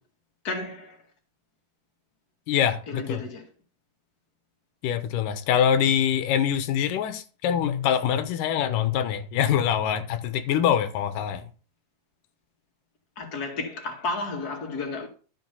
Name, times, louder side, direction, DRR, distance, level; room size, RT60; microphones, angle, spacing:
voice 1, 0.4-1.0 2.9-3.4 13.2-15.1, left 3 dB, 35° left, 2.2 m, -32 dB
voice 2, 2.5-3.2 4.8-11.5, left 9 dB, 90° left, 2.6 m, -24 dB
12.5 x 5.6 x 5.5 m
omnidirectional pair, 3.6 m